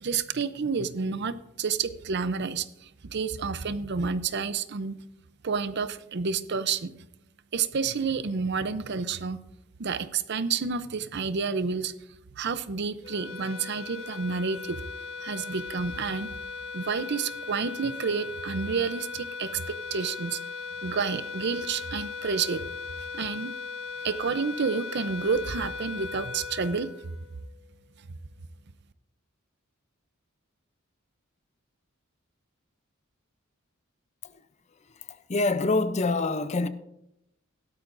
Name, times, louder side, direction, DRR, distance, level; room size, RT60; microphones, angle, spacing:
voice 1, 0.0-5.0 5.4-6.9 7.5-9.4 9.8-11.9 12.4-14.8 15.2-16.3 16.7-20.4 20.8-22.6 23.0-23.5 24.0-27.2, right 5 dB, 55° right, 0.6 m, -30 dB
sound 1, 13.0-27.6, left 5 dB, 75° left, 1.2 m, -38 dB
voice 2, 35.1-36.7, left 3 dB, 35° left, 0.5 m, -26 dB
16.5 x 12.5 x 2.6 m
head